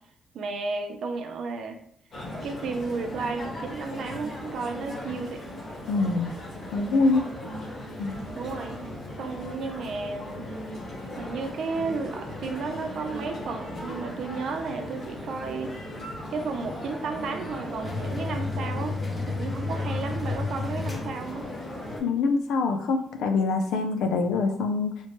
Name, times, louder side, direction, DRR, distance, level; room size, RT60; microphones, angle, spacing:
voice 1, 0.3-1.8 2.4-5.5 7.2-7.5 8.4-8.8 9.2-10.5 11.2-15.8 16.3-19.0 19.3-21.5, right 4 dB, 65° right, 5 dB, 0.4 m, -33 dB
sound 1, 2.1-22.0, left 1 dB, 55° left, 1.4 m, -38 dB
voice 2, 5.9-6.3 6.7-7.2 8.0-8.2 22.0-25.0, left 3 dB, 85° left, 6 dB, 0.4 m, -24 dB
sound 2, 17.8-21.7, left 4 dB, 30° left, 0.6 m, -31 dB
2.9 x 2.1 x 3.0 m, 0.69 s
cardioid pair, 90°, 0 cm